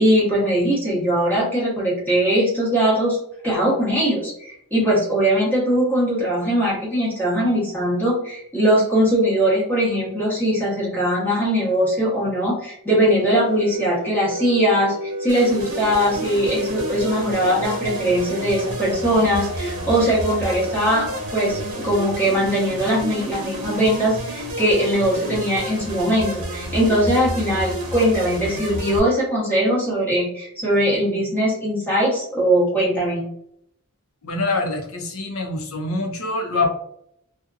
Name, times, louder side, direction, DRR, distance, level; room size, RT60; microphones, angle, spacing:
voice 1, 0.0-3.2 3.4-33.2, equal, 10° left, -7 dB, 1.0 m, -20 dB
sound 1, 12.9-23.3, equal, 70° right, 0.5 m, -32 dB
sound 2, 15.3-29.0, right 1 dB, 85° right, 0.9 m, -31 dB
voice 2, 34.2-36.7, left 2 dB, 70° left, 2 dB, 0.7 m, -25 dB
2.6 x 2.4 x 2.4 m, 0.71 s
head